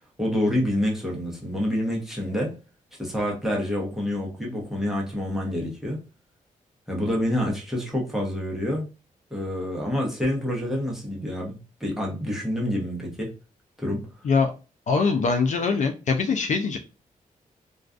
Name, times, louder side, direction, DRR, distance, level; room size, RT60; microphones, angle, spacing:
voice 1, 0.2-2.5 3.0-6.0 6.9-8.9 9.3-13.3 13.8-14.0, left 1 dB, 5° right, -3 dB, 0.8 m, -27 dB
voice 2, 14.9-16.8, left 4 dB, 55° left, 5 dB, 0.4 m, -22 dB
2.4 x 2.3 x 2.4 m, 0.31 s
wide cardioid pair, 125°, 15 cm